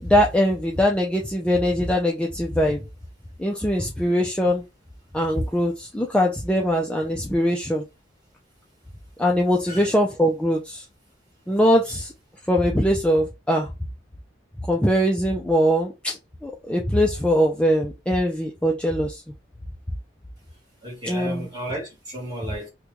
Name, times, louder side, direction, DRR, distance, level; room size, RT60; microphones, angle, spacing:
voice 1, 0.0-2.8 3.4-4.6 5.1-7.8 9.2-10.8 11.5-12.1 12.5-13.7 14.7-16.2 16.4-19.2 21.1-21.5, equal, 5° left, 0.4 m, -21 dB
voice 2, 20.8-22.7, right 1 dB, 20° right, 1.4 m, -34 dB
3.0 x 2.2 x 3.6 m
head